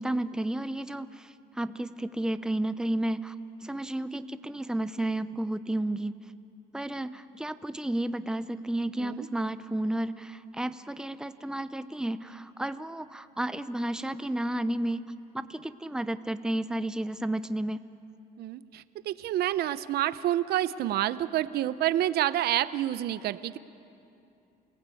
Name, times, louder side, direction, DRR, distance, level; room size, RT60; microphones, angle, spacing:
voice 1, 0.0-3.3 3.6-6.2 6.7-17.8, right 1 dB, 5° right, 12 dB, 0.7 m, -32 dB
voice 2, 18.4-23.6, right 13 dB, 70° right, 14 dB, 0.8 m, -28 dB
28.5 x 18.0 x 8.5 m, 2.7 s
cardioid pair, 110°, 17 cm